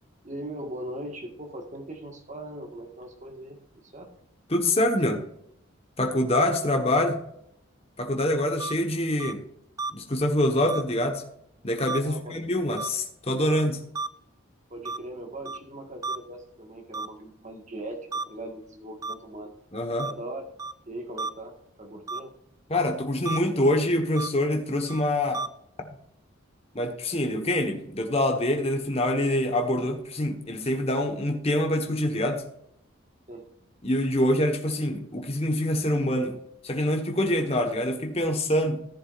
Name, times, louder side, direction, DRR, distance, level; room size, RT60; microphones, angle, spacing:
voice 1, 0.2-4.1 12.0-12.3 14.7-18.0 18.3-19.5 20.0-20.4 20.9-21.5 21.8-22.3 33.3-33.5, right 1 dB, 35° right, 3 dB, 1.6 m, -39 dB
voice 2, 4.5-5.2 6.0-7.2 8.0-9.4 9.9-11.2 11.6-13.8 19.7-20.1 22.7-25.4 26.7-32.5 33.8-36.4 36.6-38.9, left 1 dB, 30° left, 3 dB, 1.2 m, -25 dB
sound 1, 8.6-8.7 9.2-9.3 9.8-9.9 10.7-10.8 11.9-12.0 12.8-12.9 13.5-13.6 13.9-14.1 14.8-15.0 15.4-15.6 16.0-16.2 16.9-17.1 18.1-18.2 19.0-19.1 20.0-20.1 20.6-20.7 21.2-21.3 22.1-22.2 23.2-23.4 24.2-24.3 24.9-25.0 25.3-25.5, right 3 dB, 15° right, 0.3 m, -32 dB
14.5 x 7.3 x 2.5 m, 0.74 s
head